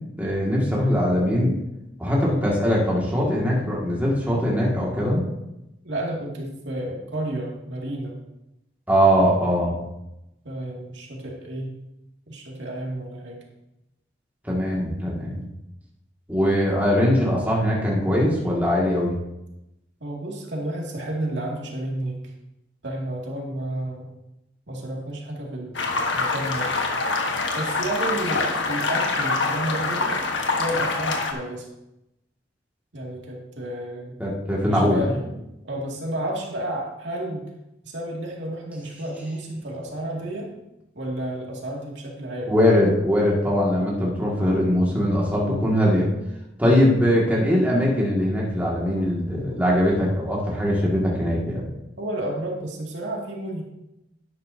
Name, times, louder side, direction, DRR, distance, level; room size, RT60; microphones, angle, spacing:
voice 1, 0.2-1.5 2.0-5.2 8.9-9.8 14.4-15.4 16.3-19.2 34.2-35.1 42.5-46.1 46.6-51.7, equal, 10° right, -4 dB, 2.1 m, -21 dB
voice 2, 5.8-8.1 10.4-11.7 12.3-13.4 20.0-22.2 22.8-24.1 24.7-26.8 27.5-30.2 30.6-31.7 32.9-34.2 34.7-37.5 37.8-40.5 40.9-42.5 52.0-53.6, right 1 dB, 75° right, -2 dB, 2.4 m, -31 dB
sound 1, 25.7-31.3, left 3 dB, 80° left, 1.4 m, -25 dB
11.5 x 10.5 x 2.8 m, 0.91 s
head